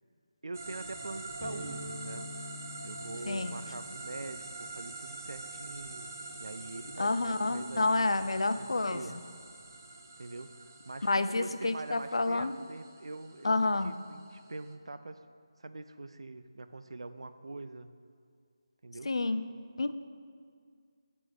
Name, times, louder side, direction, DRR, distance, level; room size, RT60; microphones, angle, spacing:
voice 1, 0.4-2.3 2.8-6.1 6.4-8.1 8.6-9.2 10.2-15.2 15.6-17.9 18.8-19.1, right 2 dB, 85° right, 11 dB, 0.4 m, -44 dB
sound 1, 0.5-14.7, right 3 dB, 30° right, 0.4 m, -46 dB
sound 2, 1.4-9.0, left 2 dB, 15° left, 0.7 m, -49 dB
voice 2, 3.3-3.6 7.0-9.2 11.0-12.6 13.4-14.0 19.0-19.5 19.8-19.9, left 2 dB, 85° left, 11 dB, 0.4 m, -29 dB
8.5 x 4.3 x 4.5 m, 2.1 s
figure-of-eight pair, 175°, 3 cm